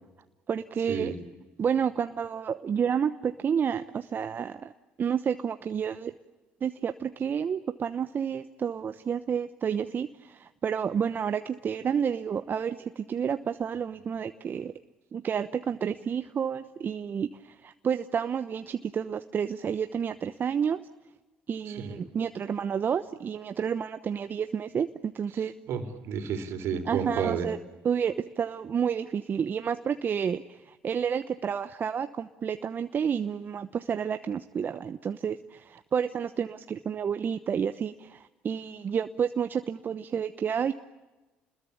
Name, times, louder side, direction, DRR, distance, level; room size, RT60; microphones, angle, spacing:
voice 1, 0.5-1.1 1.6-4.7 5.0-6.1 6.6-14.7 15.1-20.8 21.5-25.5 26.9-27.6 27.8-40.7, right 7 dB, 45° right, 10 dB, 1.0 m, -30 dB
voice 2, 21.7-22.0 25.7-27.5, right 7 dB, 65° right, 7 dB, 3.7 m, -31 dB
30.0 x 21.0 x 8.5 m, 1.2 s
hypercardioid pair, 60°, 5 cm